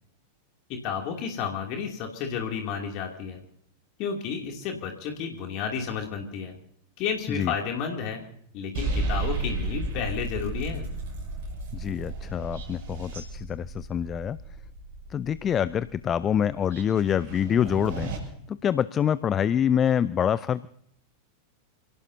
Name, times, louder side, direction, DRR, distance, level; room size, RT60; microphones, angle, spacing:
voice 1, 0.8-3.4 4.0-6.6 7.0-8.2 8.5-10.9, left 6 dB, 40° left, 2 dB, 2.7 m, -31 dB
sound 1, 8.7-18.2, right 2 dB, 50° right, 6.4 m, -34 dB
voice 2, 11.7-14.4 15.1-18.1 18.5-20.7, left 9 dB, 25° left, 17 dB, 0.5 m, -26 dB
28.5 x 18.0 x 2.8 m, 0.70 s
figure-of-eight pair, 90°, 0 cm